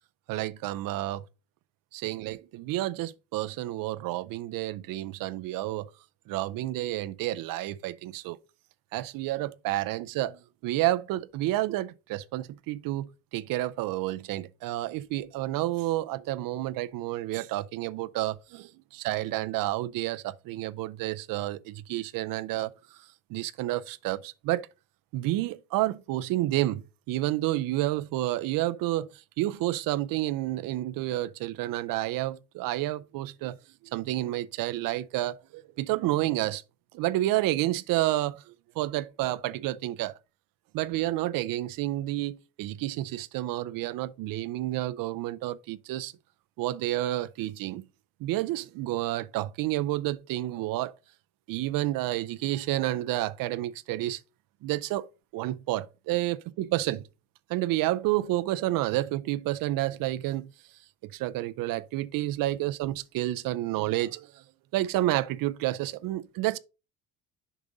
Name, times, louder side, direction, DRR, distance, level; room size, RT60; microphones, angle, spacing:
voice 1, 0.3-1.2 1.9-5.9 6.3-8.4 8.9-22.7 23.3-24.7 25.1-33.6 33.9-36.6 36.9-40.1 40.7-46.1 46.6-47.8 48.2-50.9 51.5-54.2 54.6-55.1 55.3-57.0 57.5-60.5 61.0-64.4 64.7-66.6, right 16 dB, 75° right, 0.5 m, -30 dB
7.2 x 5.2 x 3.9 m
cardioid pair, 135°, 34 cm